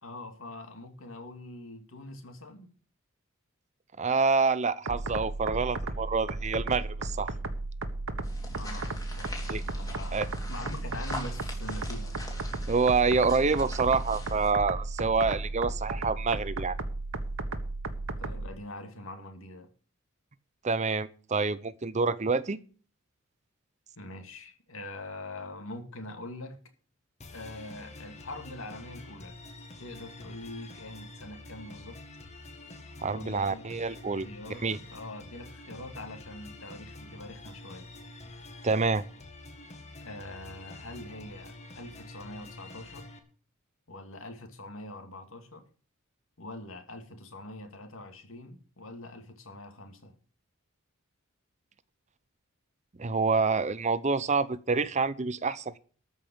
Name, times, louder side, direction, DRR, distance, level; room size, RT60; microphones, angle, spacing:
voice 1, 0.0-2.7 8.5-12.2 18.2-19.7 24.0-26.6 27.3-29.4 29.8-32.0 33.0-33.9 34.2-37.9 40.0-43.2 43.9-45.6 46.4-50.1, left 1 dB, 70° left, 2.5 m, -44 dB
voice 2, 4.0-7.3 9.5-9.6 10.1-10.3 12.7-16.8 20.6-22.6 33.0-34.3 34.6-34.8 38.6-39.0 53.0-55.8, right 4 dB, 35° right, 0.7 m, -27 dB
sound 1, 4.9-18.5, right 2 dB, 75° right, 1.3 m, -35 dB
sound 2, 8.2-14.5, left 1 dB, 15° left, 3.2 m, -43 dB
sound 3, 27.2-43.2, left 2 dB, 35° left, 2.1 m, -47 dB
13.5 x 5.5 x 8.6 m
head